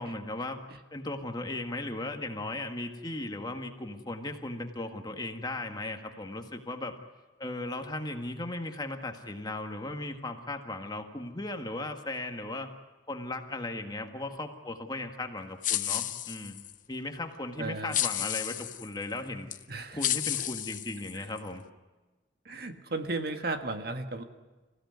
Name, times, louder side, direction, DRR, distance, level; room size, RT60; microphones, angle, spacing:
voice 1, 0.0-0.6 0.9-6.9 7.4-12.7 13.1-16.6 16.9-19.5 19.9-21.6, left 2 dB, 20° left, 5 dB, 1.8 m, -37 dB
sound 1, 15.6-16.7 17.9-18.9 19.5-19.6 20.0-21.4, left 12 dB, 45° left, 0.7 m, -31 dB
voice 2, 17.6-17.9 19.7-20.0 21.1-21.3 22.4-24.2, right 2 dB, 55° right, 6 dB, 1.6 m, -35 dB
26.5 x 16.0 x 9.4 m, 1.2 s
head